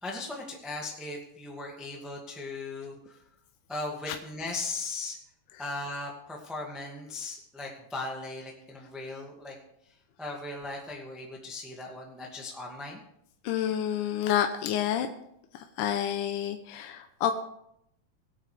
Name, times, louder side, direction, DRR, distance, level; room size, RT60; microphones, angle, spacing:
voice 1, 0.0-3.2 3.7-5.2 5.6-9.5 10.2-13.0, left 2 dB, ahead, -2 dB, 0.9 m, -38 dB
voice 2, 13.4-15.1 15.5-17.3, left 10 dB, 75° left, 5 dB, 2.1 m, -29 dB
22.5 x 8.9 x 3.4 m, 0.76 s
omnidirectional pair, 4.1 m